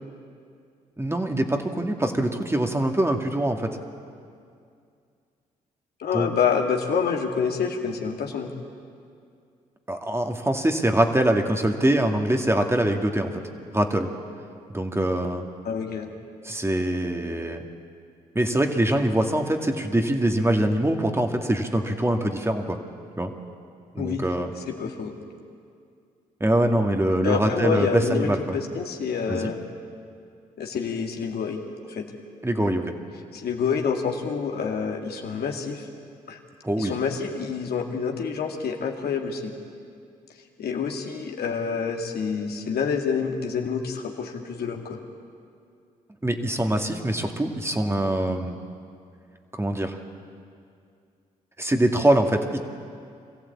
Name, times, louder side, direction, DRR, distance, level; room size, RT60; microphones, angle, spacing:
voice 1, 1.0-3.8 6.1-6.3 9.9-13.4 13.7-14.1 14.7-15.4 16.4-17.6 18.4-22.8 23.2-23.3 23.9-24.5 26.4-28.6 29.3-29.5 32.4-32.9 36.6-36.9 46.2-48.6 49.6-50.0 51.6-52.6, right 1 dB, 15° right, 4 dB, 2.2 m, -23 dB
voice 2, 6.0-8.5 15.6-16.1 24.0-24.2 24.8-25.1 27.2-29.6 30.6-31.6 31.9-32.1 33.3-35.8 36.3-36.4 36.8-39.5 40.6-45.0, left 6 dB, 70° left, 2 dB, 2.2 m, -27 dB
23.5 x 15.0 x 8.6 m, 2.3 s
hypercardioid pair, 50°, 17 cm